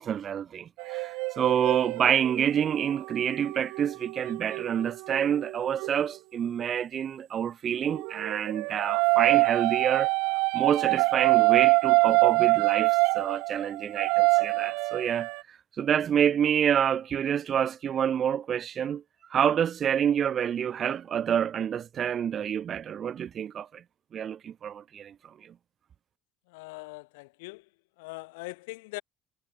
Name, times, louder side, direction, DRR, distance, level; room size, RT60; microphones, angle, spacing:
voice 1, 0.0-10.1 10.5-15.3 15.8-19.0 19.3-23.8 24.1-25.1 25.4-25.5, right 8 dB, 45° right, 0.6 m, -27 dB
sound 1, 0.8-5.9 7.9-15.4, right 30 dB, 65° right, 1.1 m, -25 dB
voice 2, 26.5-27.6 28.0-29.0, left 25 dB, 70° left, 6.3 m, -41 dB
figure-of-eight pair, 55°, 0 cm